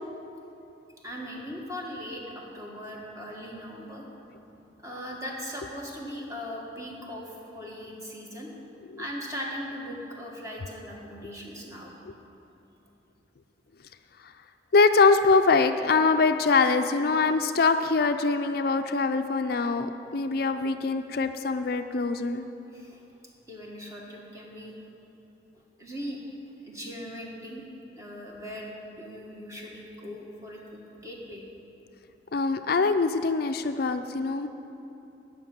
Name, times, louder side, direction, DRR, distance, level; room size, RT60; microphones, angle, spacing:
voice 1, 1.0-4.1 4.8-8.5 9.0-11.9 22.7-23.0 23.5-24.8 25.8-26.2 26.6-27.6 27.9-31.4, equal, 20° right, -2 dB, 1.8 m, -39 dB
voice 2, 14.7-22.4 32.3-34.5, left 4 dB, 60° left, 8 dB, 0.4 m, -23 dB
13.0 x 5.8 x 9.1 m, 2.9 s
head